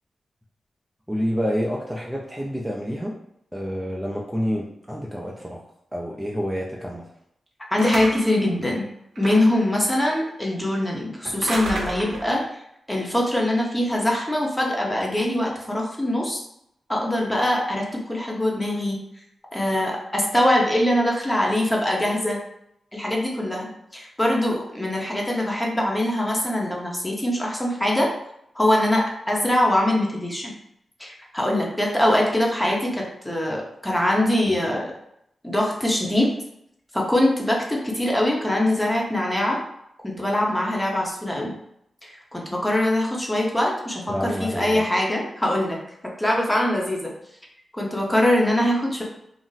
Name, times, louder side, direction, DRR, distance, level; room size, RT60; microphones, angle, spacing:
voice 1, 1.1-3.2 3.5-5.6 5.9-7.0 34.5-34.6 44.1-44.8, equal, 5° right, -3 dB, 0.4 m, -28 dB
voice 2, 7.7-8.8 9.2-12.4 12.9-16.4 16.9-19.0 19.5-22.4 22.9-28.1 28.5-30.5 31.0-34.9 35.4-36.3 36.9-39.6 40.0-41.5 42.0-45.8 46.2-47.1 47.7-49.0, left 1 dB, 10° left, -1 dB, 0.8 m, -23 dB
sound 1, 7.8-8.4 9.2-9.7 11.2-12.4, right 2 dB, 80° right, 0.5 m, -32 dB
2.5 x 2.0 x 3.9 m, 0.77 s
cardioid pair, 85°, 0 cm